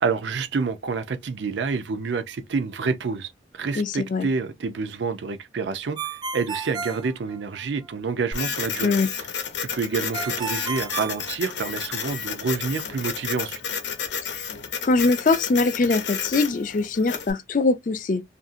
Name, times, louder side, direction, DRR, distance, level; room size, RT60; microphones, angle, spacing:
voice 1, 0.0-9.3 9.7-13.6, right 4 dB, 80° right, 0.5 m, -28 dB
voice 2, 3.8-4.3 8.8-9.1 14.2-14.3 14.8-18.2, left 3 dB, 45° left, 0.4 m, -22 dB
Ringtone, 6.0-7.9 10.1-12.0, right 5 dB, 25° right, 0.5 m, -33 dB
Printer, 8.3-17.3, left 6 dB, 75° left, 0.7 m, -31 dB
2.7 x 2.6 x 2.5 m
head